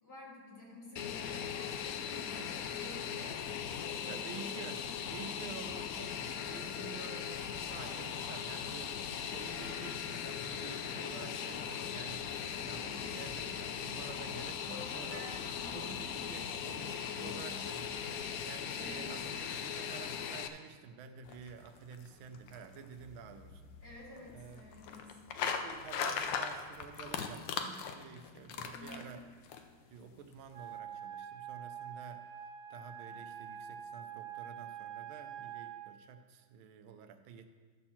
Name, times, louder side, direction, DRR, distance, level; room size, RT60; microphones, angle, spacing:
voice 1, 0.0-6.0 12.4-13.0 14.7-17.7 18.7-19.1 23.8-25.1 28.7-29.1, left 1 dB, 50° left, -6 dB, 3.2 m, -51 dB
Fixed-wing aircraft airplane, 1.0-20.5, left 8 dB, 85° left, 0.7 m, -39 dB
voice 2, 3.9-4.8 5.1-6.2 6.5-12.3 12.6-15.2 15.7-23.6 24.3-24.6 25.4-29.2 29.9-32.2 32.7-37.5, right 7 dB, 80° right, 7 dB, 1.5 m, -50 dB
sound 1, 21.3-29.6, left 6 dB, 70° left, 1.3 m, -40 dB
Wind instrument woodwind instrument, 30.5-35.9, right 9 dB, 50° right, 1.0 m, -45 dB
12.0 x 4.4 x 7.1 m, 1.5 s
omnidirectional pair, 2.2 m